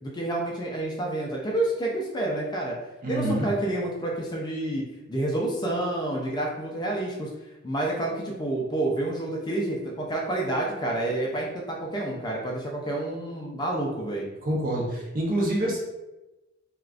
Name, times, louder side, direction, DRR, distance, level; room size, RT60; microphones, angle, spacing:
voice 1, 0.0-2.7 3.1-4.8 5.1-7.3 7.6-14.3, right 1 dB, 20° left, -1 dB, 0.4 m, -29 dB
voice 2, 3.0-3.5 14.4-15.8, right 1 dB, 40° right, -3 dB, 0.7 m, -26 dB
3.4 x 2.3 x 2.4 m, 1.0 s
head